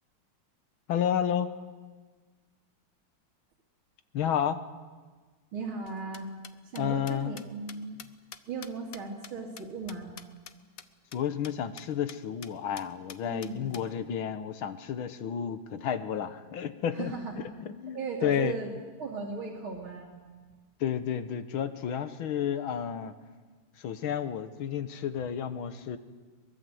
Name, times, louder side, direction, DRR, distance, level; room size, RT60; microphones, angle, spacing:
voice 1, 0.9-1.5 4.1-4.6 6.8-7.4 11.1-17.1 17.6-18.5 20.8-23.1 23.8-26.0, left 9 dB, 85° left, 11 dB, 2.0 m, -31 dB
voice 2, 5.5-6.3 6.6-8.0 8.5-10.1 13.2-13.9 16.9-17.4 17.9-18.7 19.0-20.1, right 4 dB, 90° right, -3 dB, 3.3 m, -37 dB
sound 1, 5.9-10.5 10.8-10.9 11.1-11.2 11.4-11.5 11.8-12.2 12.4-12.5 12.8-13.8, left 8 dB, 55° left, 1.1 m, -46 dB
23.0 x 21.5 x 7.9 m, 1.4 s
omnidirectional pair, 2.2 m